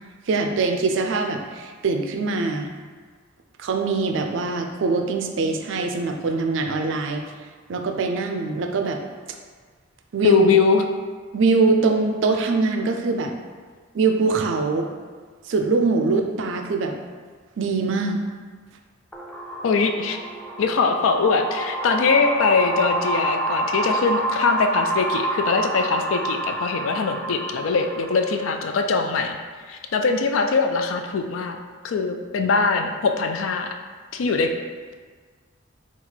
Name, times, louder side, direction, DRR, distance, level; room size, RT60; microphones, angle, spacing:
voice 1, 0.3-2.7 3.6-7.2 7.7-9.0 10.1-10.5 11.3-13.3 13.9-14.9 15.5-17.0 17.6-18.2, right 4 dB, 65° right, 4 dB, 0.4 m, -23 dB
voice 2, 10.2-10.9 19.6-20.2 20.6-29.4 29.7-31.6 31.8-33.7 34.1-34.5, left 4 dB, 80° left, 5 dB, 0.4 m, -22 dB
sound 1, 19.1-28.6, right 2 dB, 5° left, 0.4 m, -28 dB
4.3 x 2.4 x 3.9 m, 1.5 s
head